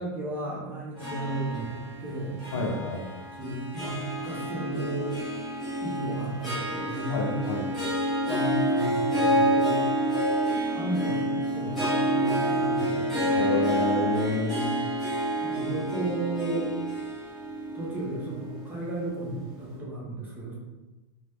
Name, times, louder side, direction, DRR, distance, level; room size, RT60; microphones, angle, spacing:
voice 1, 0.0-2.8 3.4-5.1 5.8-7.4 8.3-10.2 10.7-13.6 15.4-16.7 17.7-20.5, right 2 dB, 15° right, -5 dB, 0.9 m, -34 dB
Harp, 1.0-19.4, right 1 dB, ahead, 1.3 m, -28 dB
voice 2, 2.5-3.1 7.1-7.6 13.4-14.8, left 3 dB, 80° left, -2 dB, 0.6 m, -29 dB
2.8 x 2.2 x 3.4 m, 1.1 s
supercardioid pair, 135°, 12 cm